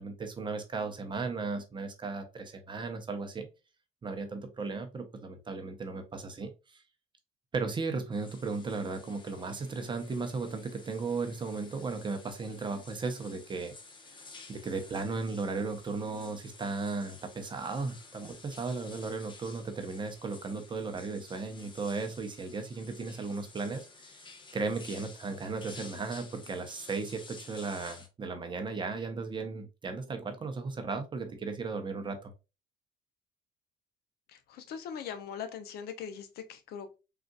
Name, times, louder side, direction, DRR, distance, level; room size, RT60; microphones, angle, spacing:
voice 1, 0.0-3.5 4.0-6.8 7.5-13.7 14.5-32.3, right 4 dB, 30° right, 0.7 m, -36 dB
sound 1, 8.1-28.1, left 3 dB, 30° left, 0.7 m, -52 dB
voice 2, 34.5-37.0, left 7 dB, 70° left, 0.6 m, -41 dB
3.8 x 2.5 x 2.2 m
cardioid pair, 110°, 17 cm